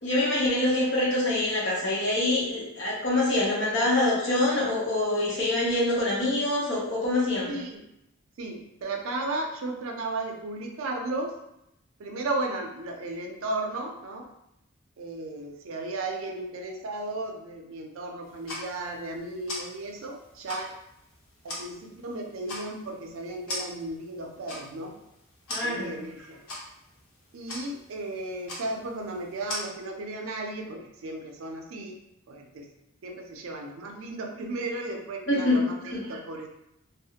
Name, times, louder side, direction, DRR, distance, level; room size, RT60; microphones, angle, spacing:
voice 1, 0.0-7.5 25.5-26.0 35.3-36.0, left 2 dB, 60° left, -5 dB, 0.8 m, -25 dB
voice 2, 7.5-7.8 8.4-11.4 12.0-14.3 15.0-20.7 21.4-24.9 25.6-26.4 27.3-32.0 32.3-32.7 33.0-36.5, right 2 dB, 80° right, 2 dB, 0.4 m, -35 dB
sound 1, 18.2-29.6, left 1 dB, 90° left, 0.8 m, -42 dB
2.4 x 2.0 x 2.7 m, 0.83 s
head